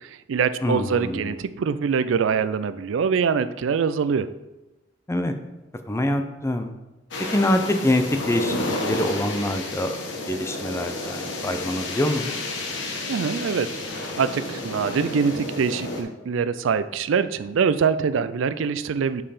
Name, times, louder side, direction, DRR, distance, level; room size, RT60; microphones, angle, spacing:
voice 1, 0.0-4.3 13.1-13.7 14.0-19.2, right 6 dB, 80° right, 13 dB, 0.4 m, -24 dB
voice 2, 0.6-1.4 5.1-5.3 5.9-6.7 7.3-8.6 8.8-10.0 10.3-12.3, left 1 dB, 15° left, 7 dB, 0.4 m, -25 dB
sound 1, 7.1-16.0, left 2 dB, 65° left, 1.1 m, -31 dB
5.6 x 4.6 x 4.9 m, 1.1 s
head